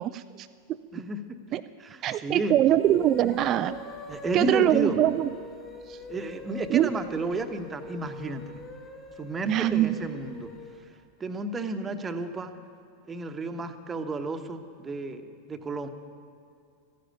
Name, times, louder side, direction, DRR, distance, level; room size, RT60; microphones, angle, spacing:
voice 1, 0.0-1.0 1.5-1.6 2.0-3.8 4.3-5.3 5.9-6.0 6.7-6.9 9.5-9.9, right 12 dB, 35° right, 10 dB, 0.4 m, -23 dB
voice 2, 0.9-1.4 1.8-2.5 4.1-5.0 6.1-8.6 9.2-10.5 11.2-12.5 13.1-15.9, right 2 dB, 20° right, 7 dB, 1.1 m, -32 dB
sound 1, 2.7-10.8, left 3 dB, 20° left, 1.9 m, -43 dB
14.0 x 10.0 x 9.0 m, 2.5 s
figure-of-eight pair, 90°, 0 cm